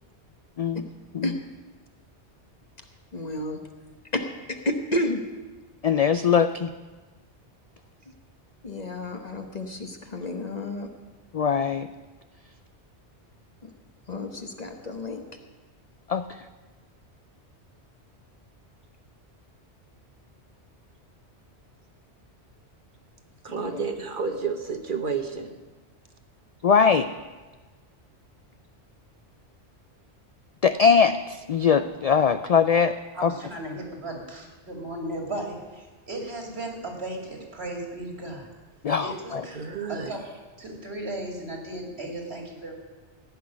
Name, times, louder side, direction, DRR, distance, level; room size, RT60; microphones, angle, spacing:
voice 1, 3.1-3.6 4.1-4.2 4.5-5.2 8.6-10.9 13.6-13.7 14.1-15.2 23.6-23.8, left 1 dB, 40° left, 1.2 m, -31 dB
voice 2, 5.8-6.7 11.3-11.9 16.1-16.2 26.6-27.1 30.6-33.0 33.2-33.3 38.8-39.4, left 6 dB, 65° left, 0.3 m, -21 dB
voice 3, 23.4-25.6 39.5-40.1, right 5 dB, 50° right, 1.2 m, -30 dB
voice 4, 33.1-38.5 39.0-42.7, right 1 dB, 65° right, 2.9 m, -36 dB
16.0 x 6.1 x 9.7 m
omnidirectional pair, 1.2 m